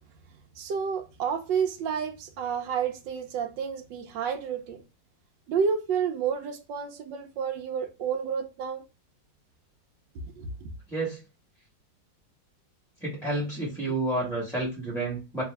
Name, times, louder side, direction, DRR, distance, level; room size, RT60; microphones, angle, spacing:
voice 1, 0.6-4.8 5.5-8.8 10.1-10.7, right 6 dB, 85° right, 1.5 m, -30 dB
voice 2, 10.9-11.2 13.0-15.4, right 2 dB, ahead, 1.5 m, -30 dB
3.3 x 3.2 x 3.4 m
omnidirectional pair, 1.9 m